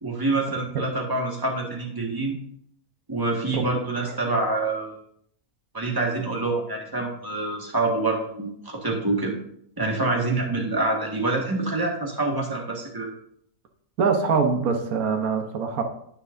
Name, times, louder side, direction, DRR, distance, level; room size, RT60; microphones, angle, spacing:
voice 1, 0.0-2.4 3.1-4.9 5.7-9.3 9.8-13.1, right 2 dB, 15° right, -1 dB, 1.6 m, -26 dB
voice 2, 14.0-15.8, right 5 dB, 70° right, 4 dB, 1.5 m, -23 dB
10.0 x 9.5 x 2.6 m, 0.69 s
omnidirectional pair, 1.6 m